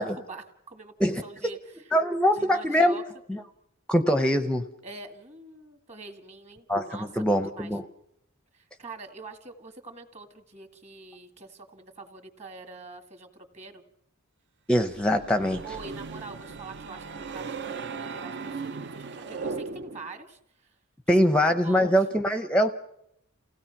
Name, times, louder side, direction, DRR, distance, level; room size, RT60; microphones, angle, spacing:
voice 1, 0.0-1.6 2.3-3.0 4.8-7.8 8.5-13.8 14.9-15.0 15.6-20.7 21.2-22.0, right 3 dB, 30° right, 6 dB, 1.9 m, -45 dB
voice 2, 1.9-3.0 3.3-3.4 3.9-4.6 6.7-7.8 14.7-15.6 21.1-22.7, equal, 5° left, 8 dB, 0.7 m, -23 dB
sound 1, 14.9-20.2, right 4 dB, 55° right, 0.8 m, -37 dB
28.5 x 17.0 x 5.9 m, 0.80 s
head